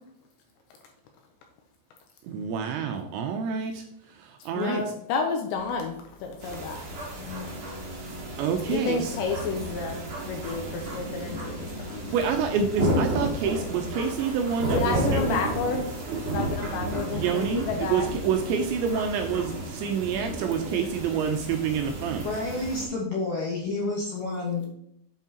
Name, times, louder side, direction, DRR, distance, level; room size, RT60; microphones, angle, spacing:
voice 1, 2.2-3.8 4.2-4.8 8.4-9.1 11.9-15.4 17.1-22.3, right 6 dB, 85° right, 4 dB, 2.7 m, -28 dB
voice 2, 4.5-6.8 7.3-7.5 8.7-12.1 14.7-18.1, left 4 dB, 85° left, 4 dB, 2.7 m, -31 dB
Organ, 5.5-15.7, equal, 45° left, 3.3 m, -44 dB
sound 1, 6.4-22.8, right 1 dB, 50° right, 2.1 m, -33 dB
voice 3, 22.2-24.7, left 3 dB, 70° left, -4 dB, 2.1 m, -29 dB
8.1 x 7.3 x 2.9 m, 0.73 s
omnidirectional pair, 5.7 m